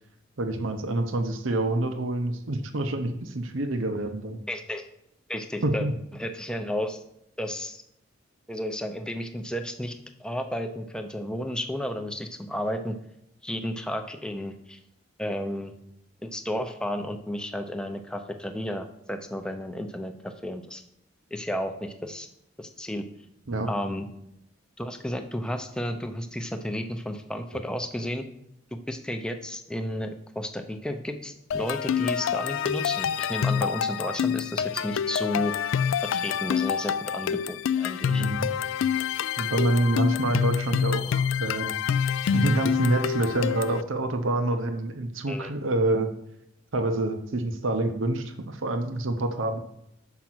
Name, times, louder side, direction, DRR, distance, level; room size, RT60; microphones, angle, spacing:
voice 1, 0.4-4.4 5.6-5.9 23.5-23.7 27.5-27.6 38.1-38.5 39.4-41.8 42.0-46.1 46.7-49.6, right 2 dB, 85° right, 7 dB, 0.8 m, -27 dB
voice 2, 4.5-4.8 5.3-5.9 6.1-7.0 7.4-7.8 8.5-9.9 10.2-12.9 13.4-14.8 15.2-15.7 16.2-20.8 21.3-22.3 22.6-23.0 23.7-24.1 24.8-28.2 28.9-35.5 36.1-38.2 45.3-45.5, equal, 5° left, 6 dB, 0.5 m, -32 dB
sound 1, 31.5-43.8, left 8 dB, 75° left, 0.3 m, -27 dB
5.9 x 5.2 x 6.0 m, 0.78 s
head